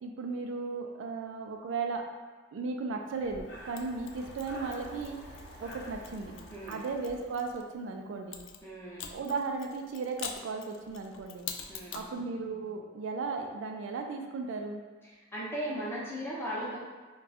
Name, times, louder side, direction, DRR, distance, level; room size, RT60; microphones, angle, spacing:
voice 1, 0.0-2.1 2.5-5.2 5.6-6.3 6.7-8.4 9.1-11.4 11.9-14.8, right 4 dB, 75° right, 3 dB, 0.3 m, -36 dB
Breathing, 3.1-8.0, equal, 60° left, 0.7 m, -48 dB
Mechanisms, 3.8-7.6 8.3-12.1, left 7 dB, 75° left, 0.3 m, -45 dB
voice 2, 6.5-6.8 8.6-9.1 11.7-12.1 15.0-16.8, equal, 10° left, -7 dB, 0.7 m, -37 dB
2.5 x 2.3 x 4.0 m, 1.4 s
head